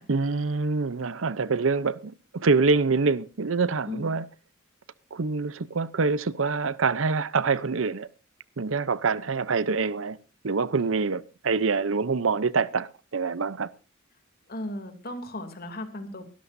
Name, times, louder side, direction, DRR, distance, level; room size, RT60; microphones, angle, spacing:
voice 1, 0.1-4.3 5.1-8.1 8.6-10.2 10.4-13.7, right 4 dB, 70° right, 0.7 m, -25 dB
voice 2, 3.8-4.2 14.5-16.2, left 1 dB, 50° left, 2.8 m, -36 dB
23.5 x 12.5 x 2.7 m
head